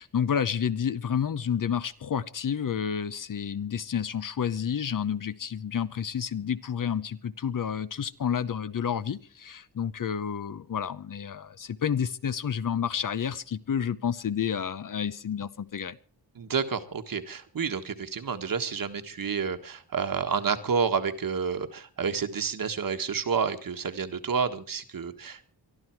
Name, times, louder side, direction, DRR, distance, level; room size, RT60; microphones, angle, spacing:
voice 1, 0.0-16.0, left 8 dB, 55° left, 0.8 m, -30 dB
voice 2, 16.3-25.4, right 6 dB, 55° right, 1.6 m, -29 dB
23.0 x 12.5 x 4.6 m
wide cardioid pair, 155°, 40 cm